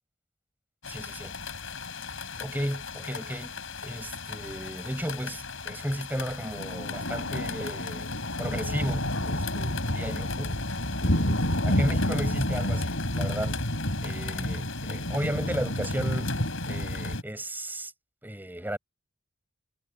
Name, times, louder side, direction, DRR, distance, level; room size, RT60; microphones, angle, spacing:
sound 1, 0.8-17.2, left 1 dB, 65° left, 7.1 m, -31 dB
voice 1, 0.9-1.3 2.1-3.6 3.8-8.1 8.4-10.6 11.0-13.6 14.0-16.4 16.7-17.9 18.2-18.8, equal, 10° right, 6.7 m, -34 dB
head